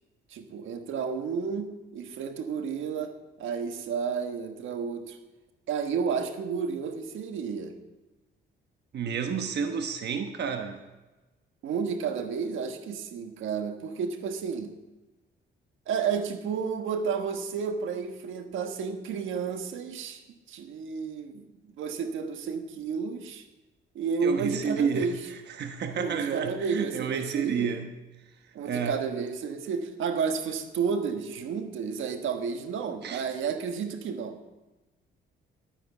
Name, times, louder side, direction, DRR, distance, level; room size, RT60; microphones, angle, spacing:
voice 1, 0.3-5.2 5.7-7.8 11.6-14.7 15.9-21.5 21.8-23.5 23.9-25.2 25.9-27.7 28.5-34.4, right 6 dB, 80° right, 7 dB, 1.4 m, -31 dB
voice 2, 8.9-10.8 24.2-27.9 28.6-29.0 33.0-33.2, right 6 dB, 60° right, 6 dB, 1.1 m, -30 dB
12.0 x 10.0 x 7.1 m, 1.1 s
cardioid pair, 90°, 20 cm